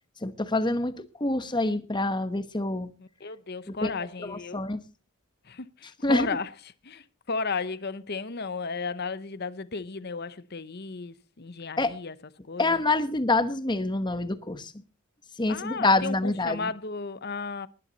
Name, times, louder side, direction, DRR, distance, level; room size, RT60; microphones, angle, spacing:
voice 1, 0.2-2.9 3.8-3.9 4.2-4.8 6.0-6.3 11.8-11.9 12.6-14.7 15.4-16.7, left 2 dB, 20° left, 1.1 m, -26 dB
voice 2, 3.0-4.6 5.4-6.5 6.8-12.2 12.5-12.8 15.5-17.7, left 4 dB, 45° left, 0.9 m, -34 dB
20.0 x 10.5 x 4.1 m
head